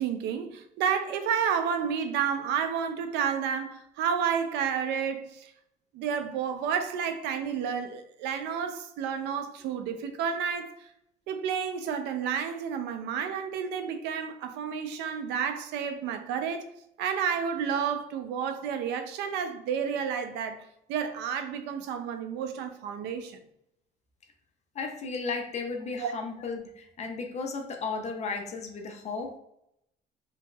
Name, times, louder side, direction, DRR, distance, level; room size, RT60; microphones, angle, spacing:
voice 1, 0.0-5.5 5.9-10.9 11.3-16.7 17.0-20.6 20.9-23.4 26.0-26.1, right 7 dB, 85° right, 0.4 m, -30 dB
voice 2, 24.7-29.4, left 4 dB, 40° left, 0.5 m, -34 dB
2.9 x 2.6 x 2.2 m
cardioid pair, 110°, 17 cm